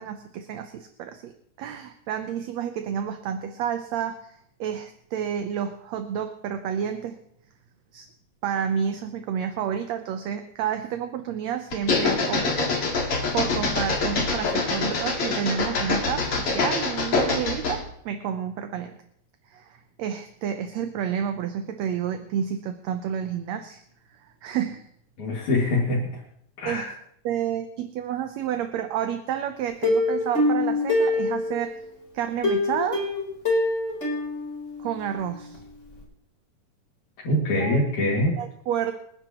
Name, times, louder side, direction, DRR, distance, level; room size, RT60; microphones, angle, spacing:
voice 1, 0.0-1.3 1.6-7.2 7.9-8.1 8.4-12.7 13.3-18.9 19.5-23.8 24.4-24.9 26.7-26.9 27.3-31.8 32.1-33.0 34.8-35.6 37.6-37.9 38.4-38.9, right 8 dB, 70° right, 7 dB, 1.9 m, -30 dB
sound 1, 11.7-17.9, left 4 dB, 50° left, 2.9 m, -25 dB
voice 2, 25.2-26.2 26.6-26.9 37.2-38.4, left 1 dB, 70° left, -5 dB, 3.7 m, -24 dB
Plucked string instrument, 29.8-31.8 32.4-35.2 35.5-35.6 36.0-36.1, left 2 dB, 25° left, 4.1 m, -25 dB
26.5 x 10.0 x 3.0 m, 0.68 s
omnidirectional pair, 3.5 m